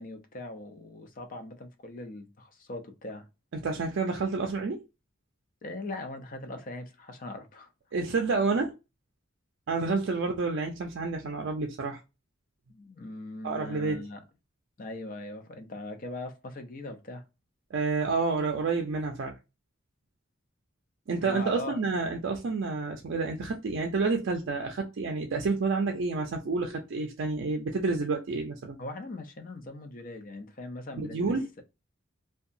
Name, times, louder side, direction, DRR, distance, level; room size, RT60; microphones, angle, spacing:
voice 1, 0.0-3.2 5.6-7.7 12.7-14.2 14.8-17.2 21.2-21.8 28.8-31.6, left 2 dB, 40° left, 0.6 m, -40 dB
voice 2, 3.5-4.8 7.9-8.7 9.7-12.0 13.4-14.0 17.7-19.4 21.1-28.8 31.0-31.5, right 4 dB, 60° right, 0.4 m, -29 dB
2.7 x 2.2 x 2.5 m
head